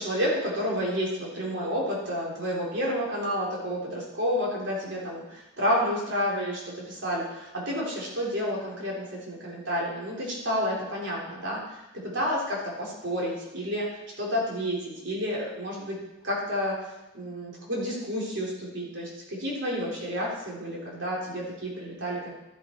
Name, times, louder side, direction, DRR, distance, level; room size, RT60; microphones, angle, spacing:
voice 1, 0.0-11.8 12.1-13.9 14.2-16.0 16.2-16.8 17.1-22.3, equal, 60° right, -4 dB, 3.7 m, -30 dB
13.0 x 7.8 x 4.6 m, 0.96 s
head